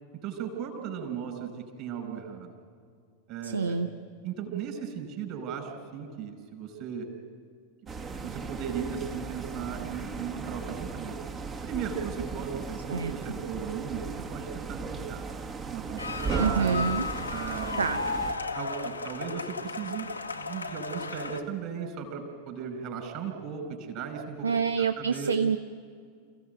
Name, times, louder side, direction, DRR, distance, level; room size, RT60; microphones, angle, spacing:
voice 1, 0.2-2.5 3.3-3.8 4.2-7.1 8.2-11.2 11.6-15.3 15.7-16.9 17.3-18.1 18.5-24.5 24.8-25.3, right 7 dB, 40° right, 6 dB, 5.4 m, -36 dB
voice 2, 3.4-3.9 12.9-13.1 16.4-17.1 17.8-18.0 24.4-25.6, right 5 dB, 75° right, 10 dB, 0.8 m, -27 dB
sound 1, 7.9-18.3, right 4 dB, 25° right, 1.6 m, -37 dB
sound 2, 16.0-21.4, left 3 dB, 80° left, 1.4 m, -35 dB
28.5 x 16.5 x 9.2 m, 2.1 s
figure-of-eight pair, 90°, 0 cm